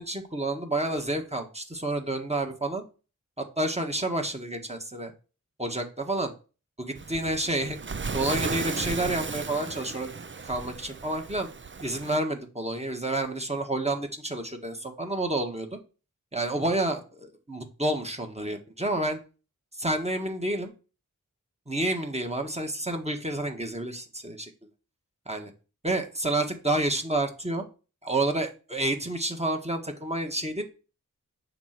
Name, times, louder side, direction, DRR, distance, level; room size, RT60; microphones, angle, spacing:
voice 1, 0.0-2.8 3.4-5.1 5.6-6.3 6.8-7.8 8.1-10.1 10.4-11.5 11.8-15.8 16.3-19.2 19.8-20.7 21.7-24.5 25.3-25.5 25.8-27.6 28.0-30.6, right 1 dB, 20° right, 4 dB, 1.6 m, -29 dB
Waves surf, 7.0-12.2, right 4 dB, 35° right, 0.5 m, -35 dB
8.6 x 3.9 x 5.9 m, 0.35 s
wide cardioid pair, 60°, 33 cm